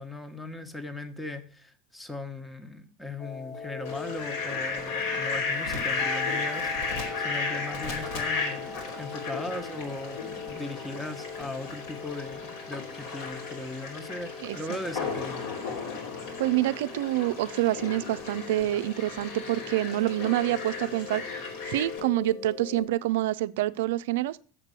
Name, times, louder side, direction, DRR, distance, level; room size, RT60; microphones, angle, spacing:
voice 1, 0.0-15.4, left 2 dB, 10° left, 1.2 m, -38 dB
sound 1, 3.2-22.9, left 4 dB, 55° left, 1.6 m, -41 dB
Fowl, 3.8-22.0, left 4 dB, 75° left, 2.9 m, -35 dB
voice 2, 14.4-14.8 16.4-21.2 21.7-24.4, right 15 dB, 75° right, 0.4 m, -27 dB
7.5 x 6.6 x 6.9 m
hypercardioid pair, 85°, 0 cm